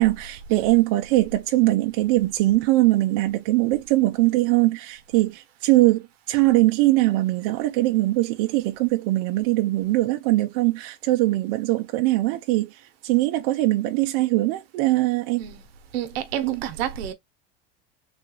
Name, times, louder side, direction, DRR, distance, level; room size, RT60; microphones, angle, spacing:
voice 1, 0.0-15.5 16.4-16.6, right 18 dB, 60° right, 0.5 m, -21 dB
voice 2, 15.9-17.1, right 10 dB, 85° right, 0.9 m, -30 dB
3.5 x 2.4 x 2.8 m
supercardioid pair, 125°, 30 cm